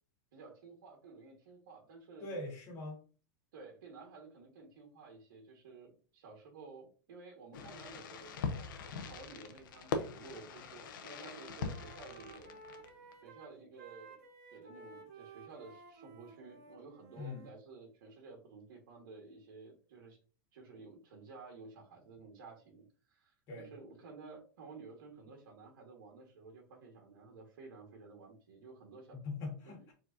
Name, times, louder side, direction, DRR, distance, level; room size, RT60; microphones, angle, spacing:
voice 1, 0.3-2.3 3.5-12.5 13.2-14.2 14.5-20.2 20.5-29.2 29.6-29.8, right 4 dB, 85° right, 0 dB, 1.8 m, -53 dB
voice 2, 2.2-3.0 17.2-17.4 23.5-23.7 29.1-29.9, left 3 dB, 30° left, 1 dB, 1.9 m, -42 dB
Fireworks, 7.5-13.1, left 5 dB, 85° left, 0.9 m, -41 dB
Wind instrument woodwind instrument, 10.3-10.7 11.0-17.6, right 4 dB, 50° right, 1.7 m, -55 dB
4.7 x 4.1 x 2.7 m, 0.38 s
supercardioid pair, 180°, 11 cm